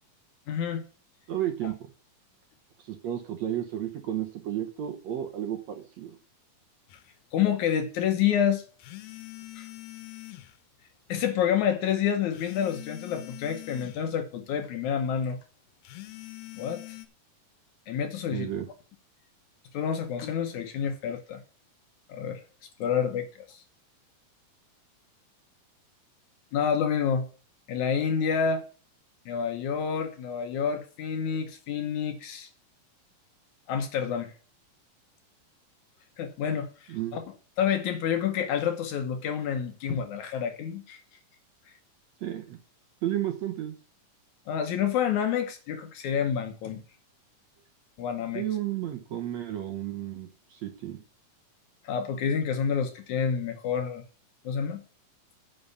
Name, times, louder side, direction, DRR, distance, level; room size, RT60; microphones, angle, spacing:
voice 1, 0.5-0.8 1.6-1.7 7.3-8.6 9.6-9.7 11.1-15.4 16.6-16.8 17.9-18.5 19.7-21.4 22.1-22.4 22.8-23.6 26.5-27.3 27.7-28.6 29.3-32.5 33.7-34.3 36.2-37.2 37.6-41.0 44.5-46.8 48.0-48.4 51.8-54.0 54.4-54.8, left 8 dB, 70° left, 2.1 m, -28 dB
voice 2, 1.3-1.7 2.9-6.1 18.3-18.7 36.9-37.2 42.2-42.6 43.0-43.7 48.3-51.0, right 12 dB, 65° right, 2.0 m, -32 dB
sound 1, 6.9-7.0 8.8-10.6 12.3-14.1 15.8-17.1, left 18 dB, 85° left, 2.6 m, -44 dB
9.4 x 5.6 x 6.7 m
omnidirectional pair, 4.0 m